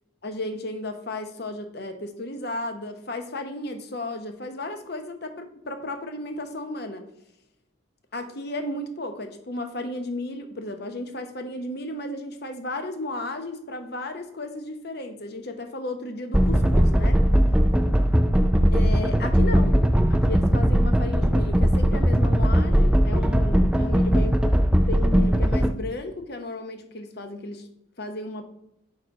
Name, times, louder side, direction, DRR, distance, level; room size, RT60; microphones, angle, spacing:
voice 1, 0.2-7.0 8.1-17.2 18.7-19.8 20.1-24.5 24.9-27.7 28.0-28.4, left 2 dB, 50° left, 6 dB, 1.0 m, -34 dB
sound 1, 16.3-25.7, equal, 5° right, 0.3 m, -19 dB
6.5 x 5.4 x 4.8 m, 0.80 s
head